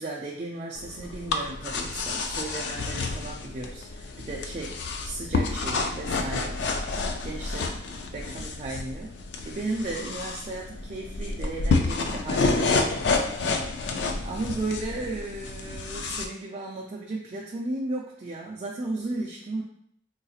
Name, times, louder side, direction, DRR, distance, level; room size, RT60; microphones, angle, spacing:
voice 1, 0.0-6.9 7.2-7.8 8.1-9.1 9.5-13.6 14.2-19.6, right 2 dB, 40° right, -2 dB, 0.4 m, -35 dB
sound 1, 0.8-16.3, left 3 dB, 75° left, 0.4 m, -29 dB
3.8 x 2.8 x 2.4 m, 0.68 s
head